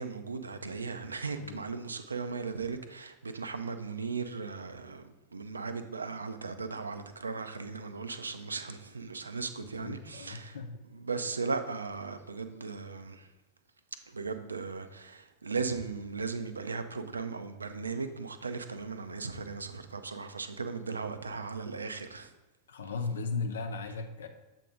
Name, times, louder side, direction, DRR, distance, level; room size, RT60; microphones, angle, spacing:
voice 1, 0.0-10.6 10.9-13.3 14.1-22.3, right 4 dB, 75° right, 0.4 m, -37 dB
voice 2, 9.6-10.7 22.7-24.3, left 4 dB, 65° left, 0.6 m, -36 dB
7.4 x 2.6 x 5.0 m
figure-of-eight pair, 90°, 0 cm